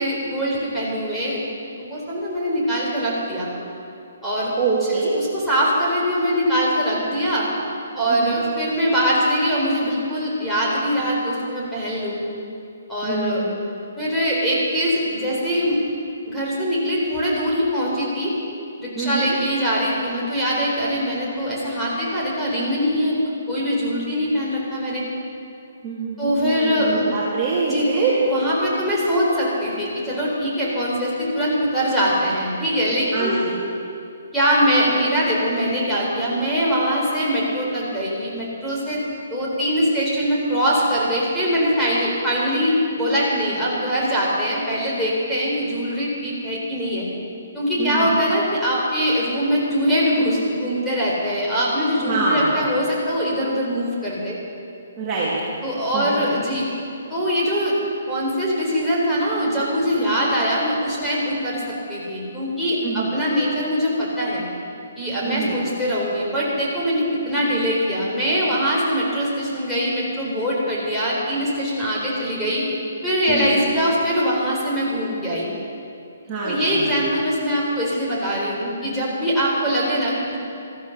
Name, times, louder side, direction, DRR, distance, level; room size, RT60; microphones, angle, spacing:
voice 1, 0.0-1.4 1.8-3.5 4.2-4.5 5.2-7.5 8.0-12.2 12.9-13.4 14.0-15.8 16.3-18.3 18.8-23.2 23.5-25.0 26.2-27.0 27.7-27.9 28.2-33.4 34.3-39.0 39.3-47.1 47.5-54.4 55.6-56.7 57.1-57.8 58.1-64.4 65.0-72.6 73.0-75.5 76.4-80.4, equal, 5° left, -7 dB, 4.1 m, -22 dB
voice 2, 4.6-5.2 8.1-8.4 13.0-13.6 18.9-19.4 25.8-28.1 33.1-33.6 47.8-48.2 52.1-52.5 55.0-55.3 55.9-56.4 62.8-63.1 65.2-65.6 73.3-73.6 76.3-77.0, right 4 dB, 20° right, -8 dB, 2.7 m, -25 dB
14.0 x 12.5 x 6.6 m, 2.6 s
hypercardioid pair, 155°, 0 cm